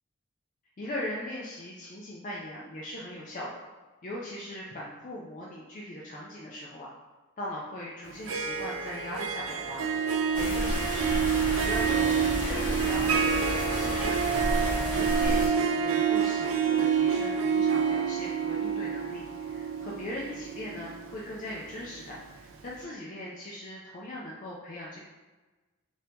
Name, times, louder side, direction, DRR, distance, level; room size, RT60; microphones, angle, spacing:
voice 1, 0.8-3.6 4.0-6.9 7.4-9.9 10.4-11.2 11.6-14.5 14.9-25.0, left 1 dB, 40° left, -5 dB, 0.4 m, -40 dB
Harp, 8.1-22.0, right 7 dB, 80° right, 0.4 m, -28 dB
sound 1, 10.3-15.5, equal, 10° left, 1.0 m, -32 dB
2.8 x 2.7 x 3.4 m, 1.2 s
head